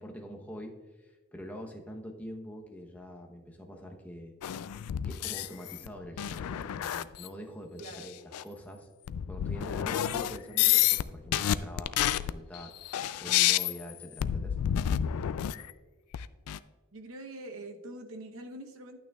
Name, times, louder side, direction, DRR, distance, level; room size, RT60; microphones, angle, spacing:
voice 1, 0.0-4.3 5.0-8.9 9.3-14.6, equal, 5° left, 1 dB, 0.8 m, -45 dB
sound 1, 4.4-5.9 6.2-7.3 7.9-8.0 8.3-8.4 9.1-11.0 11.3-15.7 16.1-16.6, left 11 dB, 85° left, 0.3 m, -29 dB
voice 2, 7.8-8.1 16.9-19.0, right 1 dB, 65° right, 5 dB, 0.9 m, -44 dB
11.5 x 9.0 x 2.3 m, 1.3 s
head